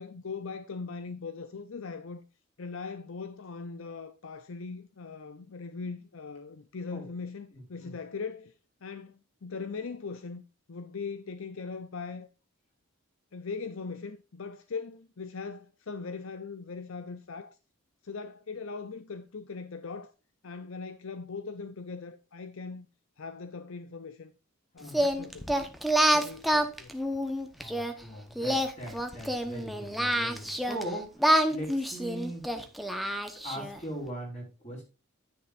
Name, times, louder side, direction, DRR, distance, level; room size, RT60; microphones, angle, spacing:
voice 1, 0.0-2.2 2.6-8.5 8.8-10.4 10.7-12.3 13.3-17.6 18.0-20.1 20.4-22.9 23.2-24.3 24.7-25.7 26.1-26.9, left 4 dB, 65° left, 0.6 m, -40 dB
voice 2, 7.5-7.9 24.8-25.0 27.5-31.1 31.5-32.4 33.4-34.8, right 1 dB, 30° left, 5.2 m, -40 dB
Singing, 24.9-27.9 28.4-30.8 31.2-33.8, equal, ahead, 0.9 m, -27 dB
10.5 x 9.9 x 2.5 m
head